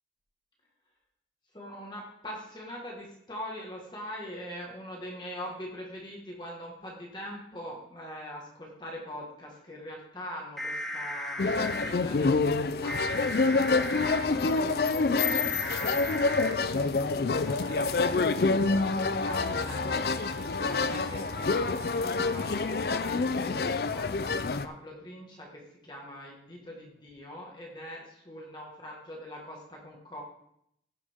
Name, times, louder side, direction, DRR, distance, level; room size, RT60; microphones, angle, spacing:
voice 1, 1.5-18.5 18.9-30.2, equal, 25° left, -2 dB, 1.7 m, -43 dB
sound 1, 10.6-11.9 12.9-14.2 15.2-16.5 17.5-23.1, equal, ahead, 1.4 m, -38 dB
sound 2, 11.4-24.7, left 4 dB, 60° left, 0.4 m, -27 dB
15.5 x 6.5 x 3.6 m, 0.74 s
head